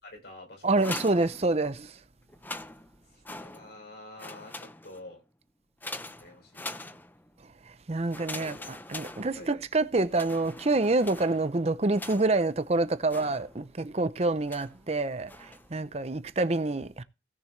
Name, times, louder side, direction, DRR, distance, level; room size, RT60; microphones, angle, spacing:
voice 1, 0.0-1.0 3.1-5.2 6.1-7.0 8.3-8.8 9.4-9.5 16.5-16.6, left 2 dB, 65° left, 5.4 m, -48 dB
sound 1, 0.6-1.9 2.3-3.9 4.2-5.1 5.8-7.4 8.1-9.7 10.1-12.5 13.1-13.8 14.5-14.8 15.3-15.8, left 2 dB, 10° left, 0.7 m, -43 dB
voice 2, 0.6-1.9 7.9-17.0, right 2 dB, 35° right, 0.7 m, -27 dB
17.0 x 6.8 x 3.3 m
head